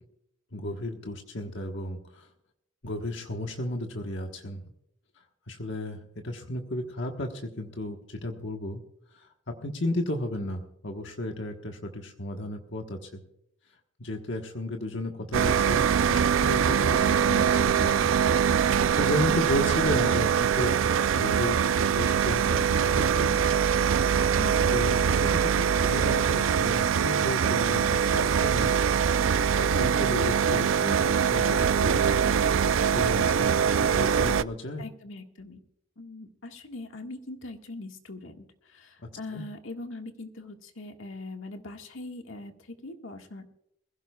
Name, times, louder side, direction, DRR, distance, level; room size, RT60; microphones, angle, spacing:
voice 1, 0.5-2.3 2.8-4.6 5.5-8.8 9.1-13.2 14.0-18.1 18.9-20.8 21.1-23.7 24.7-25.5 25.8-28.7 29.6-32.1 32.8-33.6 33.9-34.8 39.3-39.4, left 1 dB, 65° left, 3 dB, 1.3 m, -34 dB
sound 1, 15.3-34.4, right 7 dB, 80° right, 0.4 m, -23 dB
voice 2, 24.4-24.8 34.8-35.6 36.0-43.5, left 2 dB, 85° left, 4 dB, 1.7 m, -41 dB
21.5 x 16.0 x 2.3 m, 0.77 s
head